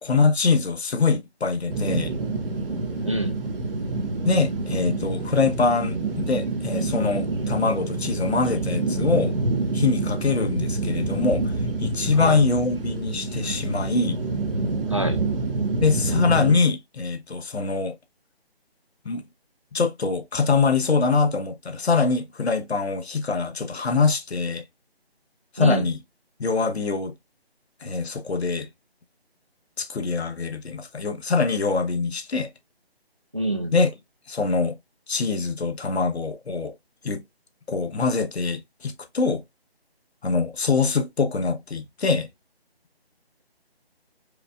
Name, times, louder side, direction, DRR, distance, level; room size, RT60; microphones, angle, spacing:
voice 1, 0.0-2.1 4.2-9.3 9.7-11.5 11.8-14.2 15.8-18.0 19.0-19.2 19.7-24.6 25.5-26.0 26.4-27.1 27.8-28.7 29.8-32.5 33.7-33.9 34.3-34.8 35.1-36.7 37.0-37.2 37.7-39.4 40.2-42.3, left 4 dB, 85° left, 1.1 m, -23 dB
sound 1, 1.7-16.6, right 3 dB, 60° right, 1.2 m, -27 dB
voice 2, 3.0-3.4 12.1-12.4 14.9-15.2 25.6-25.9 33.3-33.7, right 1 dB, 30° right, 0.5 m, -26 dB
5.0 x 2.5 x 2.2 m
figure-of-eight pair, 175°, 32 cm